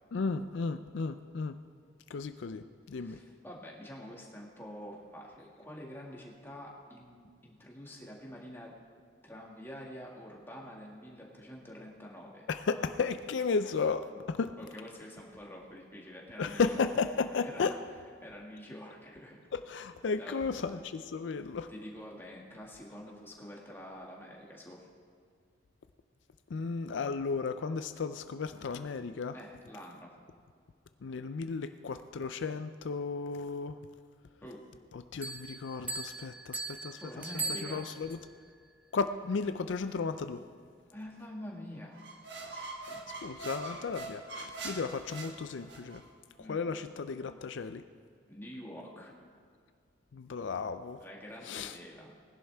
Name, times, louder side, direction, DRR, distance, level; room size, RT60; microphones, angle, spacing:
voice 1, 0.1-1.6 2.1-3.2 12.5-14.5 16.4-17.7 19.5-21.7 26.5-29.4 31.0-33.8 34.9-38.2 38.9-40.4 43.2-46.0 46.5-47.8 50.1-51.0 51.4-51.8, left 4 dB, 75° left, 10 dB, 0.4 m, -34 dB
voice 2, 3.0-8.8 9.2-12.5 14.6-16.9 17.4-17.7 18.2-19.4 20.2-20.6 21.7-24.9 29.3-30.1 34.4-34.6 37.0-37.9 40.9-43.0 46.4-46.6 48.3-49.1 51.0-52.2, equal, 10° left, -3 dB, 1.9 m, -47 dB
sound 1, 35.2-38.2, right 3 dB, 10° right, 0.7 m, -39 dB
sound 2, 42.0-46.0, right 3 dB, 70° right, 1.5 m, -43 dB
19.5 x 11.0 x 3.5 m, 2.1 s
head